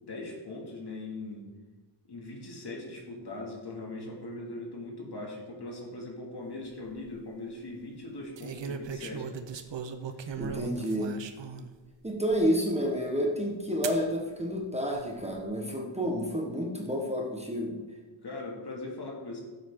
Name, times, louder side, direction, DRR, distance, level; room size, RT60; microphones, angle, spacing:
voice 1, 0.0-1.5 2.1-9.4 18.2-19.4, left 2 dB, 55° left, -1 dB, 2.6 m, -40 dB
sound 1, 6.7-7.1 8.4-11.7 12.3-12.4 13.8-14.0 14.9-15.4, right 6 dB, 65° right, 0.9 m, -38 dB
voice 2, 10.4-11.1 12.0-17.8, equal, 15° right, 0 dB, 1.3 m, -30 dB
15.0 x 7.8 x 3.8 m, 1.2 s
wide cardioid pair, 130°, 47 cm